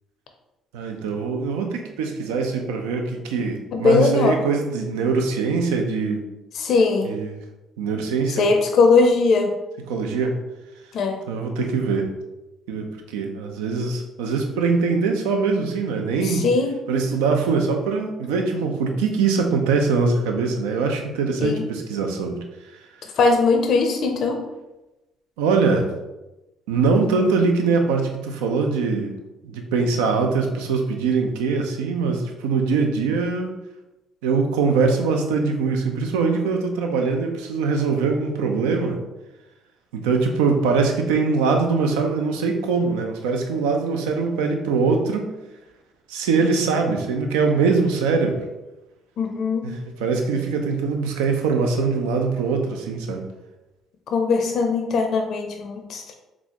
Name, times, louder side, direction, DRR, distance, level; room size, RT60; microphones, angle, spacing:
voice 1, 0.7-6.2 7.0-7.3 7.8-8.5 9.9-10.4 11.3-12.1 12.7-16.5 16.9-22.4 25.4-25.9 26.7-29.1 29.4-33.5 34.2-39.0 39.9-45.3 46.1-48.4 49.6-53.2, right 4 dB, 85° right, 4 dB, 0.4 m, -22 dB
voice 2, 3.7-4.4 6.6-7.1 8.3-9.5 10.9-11.2 16.2-16.7 21.4-21.7 23.2-24.4 49.2-49.7 54.1-56.1, left 4 dB, 65° left, 4 dB, 0.4 m, -20 dB
4.0 x 2.3 x 2.9 m, 1.0 s
hypercardioid pair, 60°, 0 cm